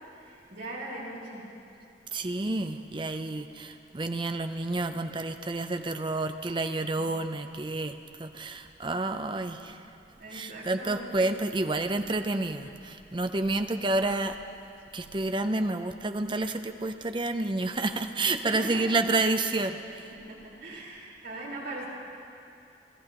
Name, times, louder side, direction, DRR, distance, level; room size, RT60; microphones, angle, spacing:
voice 1, 0.0-1.5 9.6-9.8 10.2-11.3 18.4-19.0 20.1-21.9, right 1 dB, 65° right, -6 dB, 4.6 m, -40 dB
voice 2, 2.1-9.8 10.3-14.4 14.9-20.1, right 2 dB, 25° right, 7 dB, 0.6 m, -29 dB
26.5 x 14.5 x 3.0 m, 2.7 s
head